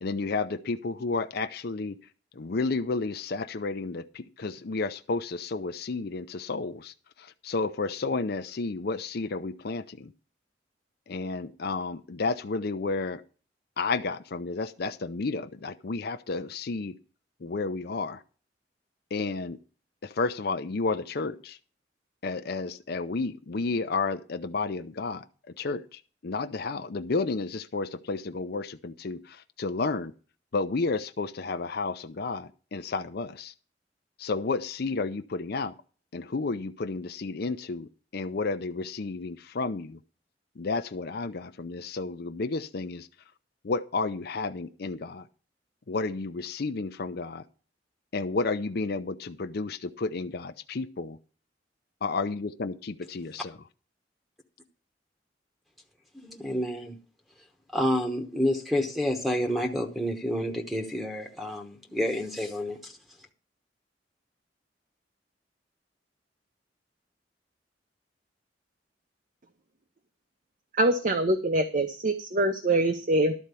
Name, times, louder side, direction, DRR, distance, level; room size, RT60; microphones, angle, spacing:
voice 1, 0.0-2.0 2.3-10.1 11.1-13.2 13.8-17.0 17.4-18.2 19.1-19.6 20.0-21.6 22.2-25.3 25.6-30.1 30.5-33.5 34.2-35.7 36.1-40.0 40.6-43.1 43.6-45.3 45.9-47.4 48.1-51.2 52.0-53.6, left 3 dB, 60° left, 8 dB, 0.6 m, -31 dB
voice 2, 56.1-57.0 57.7-62.9, equal, ahead, 2 dB, 1.0 m, -29 dB
voice 3, 70.8-73.4, right 1 dB, 45° right, 8 dB, 0.7 m, -24 dB
12.0 x 4.4 x 8.2 m, 0.38 s
head